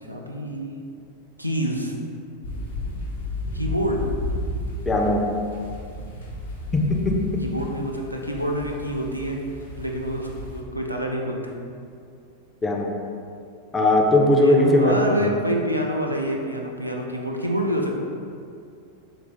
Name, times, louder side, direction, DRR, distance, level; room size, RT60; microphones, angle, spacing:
voice 1, 0.0-0.8 1.4-1.9 3.5-4.0 7.4-9.4 9.8-11.5 14.4-18.0, equal, 90° right, 0 dB, 0.3 m, -27 dB
sound 1, 2.4-10.6, left 1 dB, 60° left, 0.6 m, -33 dB
voice 2, 4.9-5.2 6.7-6.8 12.6-12.9 13.7-15.3, left 1 dB, 15° left, 0 dB, 0.4 m, -18 dB
3.0 x 2.4 x 3.3 m, 2.4 s
figure-of-eight pair, 90°, 0 cm